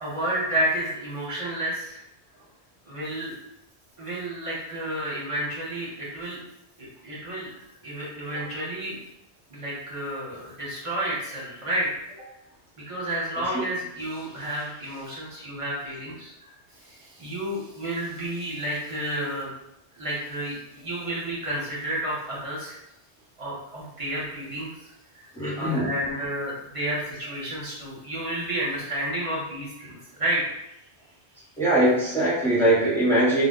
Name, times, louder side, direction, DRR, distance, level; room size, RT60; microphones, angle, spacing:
voice 1, 0.0-2.0 2.9-3.3 4.0-6.4 6.8-7.5 7.8-9.0 9.5-11.9 12.9-16.3 16.8-19.5 20.0-22.8 23.4-25.3 25.5-30.4, right 1 dB, 35° right, -6 dB, 0.8 m, -31 dB
voice 2, 25.3-25.9 31.6-33.5, right 1 dB, ahead, -9 dB, 0.8 m, -21 dB
2.2 x 2.1 x 3.7 m, 0.85 s
omnidirectional pair, 1.1 m